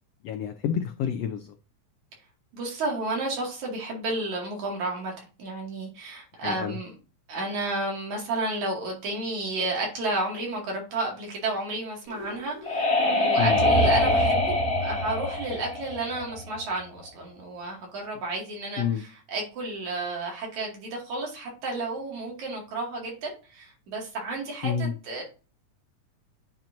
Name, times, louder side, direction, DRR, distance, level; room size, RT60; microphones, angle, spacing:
voice 1, 0.2-1.5 6.4-6.8 13.4-13.6 18.8-19.0 24.6-24.9, left 8 dB, 90° left, 6 dB, 1.4 m, -28 dB
voice 2, 2.5-6.9 7.3-25.2, right 2 dB, 65° right, -1 dB, 3.5 m, -32 dB
sound 1, 12.1-16.7, left 1 dB, 25° left, 2.8 m, -24 dB
9.1 x 4.4 x 2.6 m, 0.33 s
omnidirectional pair, 3.6 m